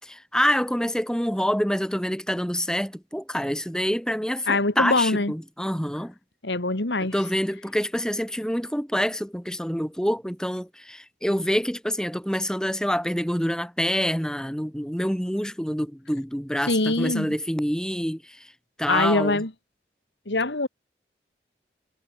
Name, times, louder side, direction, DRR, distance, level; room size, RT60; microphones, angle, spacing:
voice 1, 0.0-6.1 7.1-18.5 18.8-19.4, equal, 5° left, 5.3 m, -26 dB
voice 2, 4.5-5.3 6.4-7.1 16.7-17.3 18.9-19.5 20.3-20.7, left 2 dB, 85° left, 2.4 m, -23 dB
head